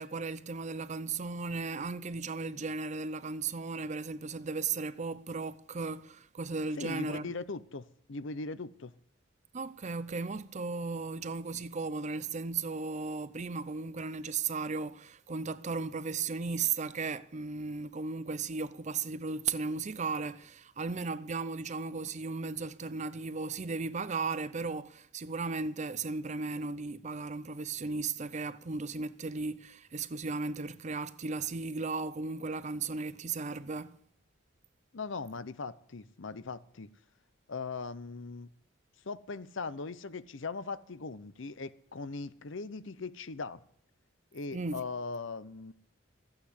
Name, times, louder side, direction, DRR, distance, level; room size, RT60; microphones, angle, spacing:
voice 1, 0.0-7.3 9.5-34.0 44.5-44.8, right 4 dB, 35° right, 0.6 m, -36 dB
voice 2, 6.8-8.9 34.9-36.9 37.5-38.5 39.0-43.6 44.3-45.7, left 4 dB, 65° left, 0.8 m, -39 dB
14.0 x 8.8 x 8.1 m
head